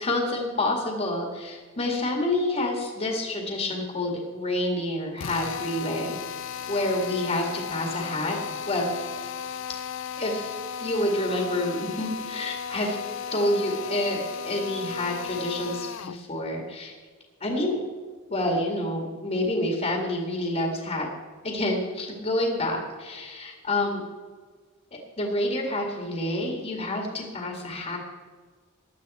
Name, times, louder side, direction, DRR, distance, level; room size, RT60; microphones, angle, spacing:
voice 1, 0.0-6.2 6.7-8.4 8.7-8.9 10.2-13.0 13.3-17.0 17.4-17.8 18.3-21.1 21.4-24.0 24.9-28.0, left 1 dB, 35° left, 1 dB, 2.2 m, -28 dB
Drill, 5.2-16.2, left 7 dB, 60° left, 0.5 m, -35 dB
16.0 x 11.5 x 4.3 m, 1.5 s
head